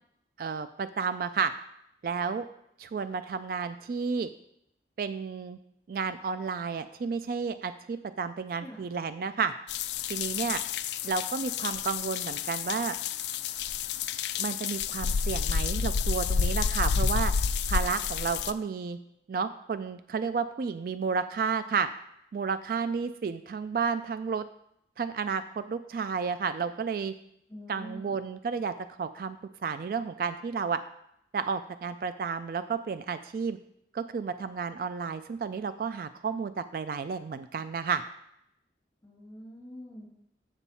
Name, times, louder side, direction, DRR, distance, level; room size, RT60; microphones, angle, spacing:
voice 1, 0.4-1.5 2.0-2.4 2.8-4.3 5.0-5.6 5.9-9.5 10.1-10.6 11.0-12.9 14.4-17.3 17.7-19.0 19.3-21.9 22.3-24.4 25.0-27.1 27.7-28.7 29.0-29.4 29.6-30.8 31.3-33.6 33.9-38.0, right 5 dB, 55° right, 11 dB, 0.3 m, -31 dB
sound 1, 9.7-18.5, left 6 dB, 80° left, 0.4 m, -30 dB
voice 2, 27.5-28.2 39.0-40.1, equal, 15° left, -5 dB, 2.4 m, -45 dB
7.1 x 7.1 x 4.2 m, 0.75 s
head